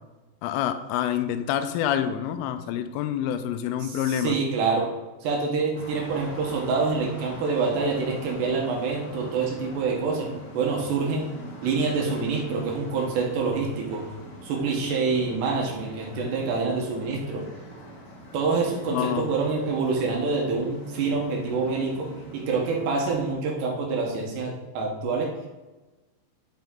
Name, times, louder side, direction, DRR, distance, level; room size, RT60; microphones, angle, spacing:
voice 1, 0.4-4.4 18.9-19.3, left 10 dB, 90° left, 10 dB, 3.1 m, -27 dB
voice 2, 3.8-4.9 5.2-10.3 10.5-11.3 11.6-14.0 14.4-17.4 18.3-22.1 22.3-25.3, right 4 dB, 70° right, -1 dB, 3.0 m, -26 dB
sound 1, 5.7-23.3, equal, 45° left, 4.0 m, -43 dB
13.0 x 5.3 x 3.7 m, 1.2 s
omnidirectional pair, 5.7 m